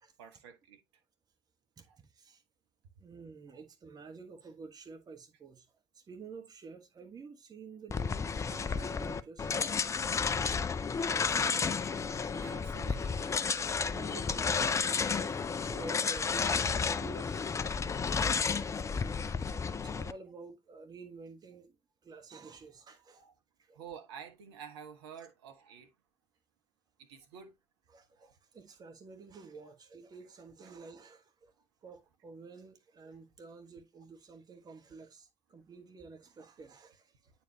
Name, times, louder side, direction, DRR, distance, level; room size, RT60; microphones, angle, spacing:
voice 1, 0.2-0.8 1.9-2.0 3.5-3.6 8.9-9.0 11.1-11.8 12.3-13.2 23.2-23.3 23.7-25.9 27.1-27.5 28.2-28.3 29.6-29.7 33.1-33.2, right 7 dB, 65° right, 1.3 m, -50 dB
voice 2, 1.8-2.4 3.0-5.7 5.9-9.9 13.5-15.3 15.7-17.6 18.0-18.6 19.5-21.8 22.0-23.3 23.6-23.8 27.9-31.5 31.8-37.3, right 4 dB, 25° right, 1.4 m, -50 dB
sound 1, 7.9-20.1, left 5 dB, 20° left, 0.5 m, -32 dB
9.0 x 4.6 x 2.8 m
figure-of-eight pair, 65°, 15 cm